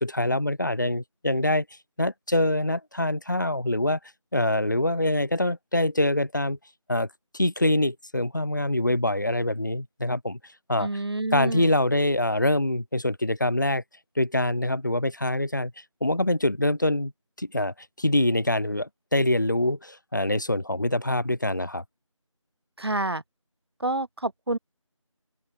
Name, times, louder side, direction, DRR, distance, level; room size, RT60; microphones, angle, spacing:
voice 1, 0.0-1.6 2.0-4.0 4.3-6.6 6.9-7.1 7.3-10.4 10.7-10.9 11.3-13.8 14.2-15.7 16.0-17.1 17.4-21.8, left 1 dB, 35° left, 0.7 m, -25 dB
voice 2, 10.8-11.7 22.8-23.2 23.8-24.6, right 2 dB, 50° right, 0.9 m, -28 dB
open air
figure-of-eight pair, 175°, 17 cm